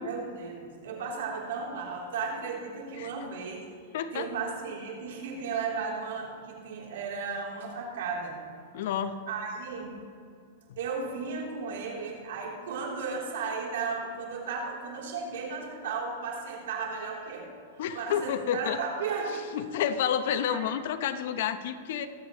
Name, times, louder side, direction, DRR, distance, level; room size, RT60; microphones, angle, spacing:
voice 1, 0.0-3.6 4.1-8.4 9.3-9.9 10.8-17.5 17.9-19.4 20.4-20.6, right 5 dB, 75° right, -2 dB, 3.3 m, -35 dB
voice 2, 3.9-4.3 8.7-9.2 17.8-18.8 19.5-22.1, left 9 dB, 65° left, 11 dB, 0.8 m, -30 dB
23.5 x 8.3 x 3.1 m, 2.2 s
hypercardioid pair, 130°, 0 cm